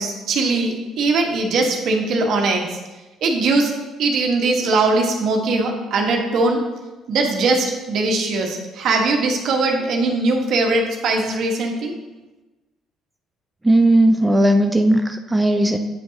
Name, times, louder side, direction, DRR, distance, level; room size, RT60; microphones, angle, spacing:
voice 1, 0.0-2.8 3.2-3.7 4.0-6.6 7.1-11.9, right 3 dB, 65° right, 2 dB, 1.2 m, -20 dB
voice 2, 13.6-15.8, right 1 dB, 15° right, 5 dB, 0.5 m, -16 dB
9.0 x 5.5 x 2.8 m, 1.1 s
hypercardioid pair, 60°, 0 cm